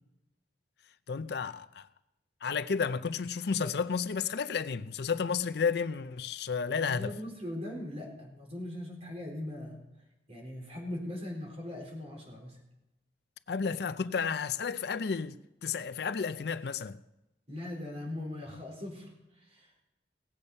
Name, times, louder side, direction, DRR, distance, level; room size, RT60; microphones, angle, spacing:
voice 1, 1.1-1.9 2.4-7.1 13.5-15.4 15.6-17.0, left 5 dB, 65° left, 0.5 m, -32 dB
sound 1, 3.6-6.6, right 2 dB, ahead, 4.6 m, -62 dB
voice 2, 6.8-9.8 10.3-12.6 17.5-19.1 19.5-19.7, left 1 dB, 40° right, 4.2 m, -40 dB
17.5 x 8.5 x 5.4 m
head